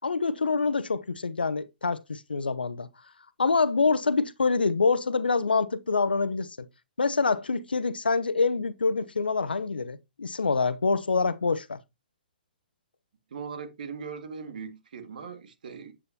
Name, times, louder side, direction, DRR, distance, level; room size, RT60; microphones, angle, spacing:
voice 1, 0.0-2.9 3.4-6.7 7.0-11.8, left 4 dB, 80° left, 0.9 m, -26 dB
voice 2, 13.3-15.9, right 6 dB, 60° right, 2.0 m, -39 dB
9.5 x 8.6 x 2.9 m
figure-of-eight pair, 125°, 5 cm